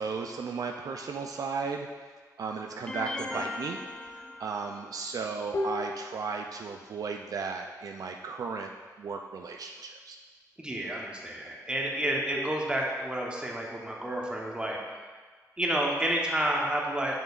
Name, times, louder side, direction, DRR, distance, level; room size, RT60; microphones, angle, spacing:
voice 1, 0.0-1.9 2.4-3.8 4.1-8.7 9.0-10.2, right 5 dB, 65° right, 3 dB, 0.4 m, -35 dB
sound 1, 1.7-2.6 3.2-3.3 3.5-3.6 3.9-4.5 5.5-8.4 12.3-14.8, left 2 dB, 50° left, 0.7 m, -41 dB
sound 2, 2.9-5.0, left 2 dB, 15° left, 0.4 m, -38 dB
voice 2, 10.6-14.8 15.6-17.2, right 1 dB, 15° right, -2 dB, 1.0 m, -30 dB
6.7 x 6.3 x 2.4 m, 1.4 s
wide cardioid pair, 115°, 7 cm